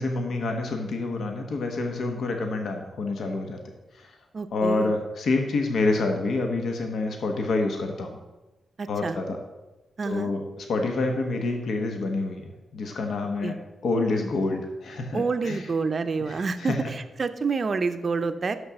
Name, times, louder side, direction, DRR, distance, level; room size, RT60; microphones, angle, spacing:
voice 1, 0.0-3.6 3.9-4.2 4.5-8.2 8.9-9.4 10.0-13.6 13.8-15.7 16.2-16.8, left 3 dB, 70° left, 3 dB, 1.1 m, -27 dB
voice 2, 4.3-4.9 8.8-9.2 10.0-10.3 13.4-13.6 15.1-18.6, right 4 dB, 40° right, 10 dB, 0.6 m, -28 dB
6.6 x 6.1 x 6.9 m, 1.1 s
wide cardioid pair, 125°, 0 cm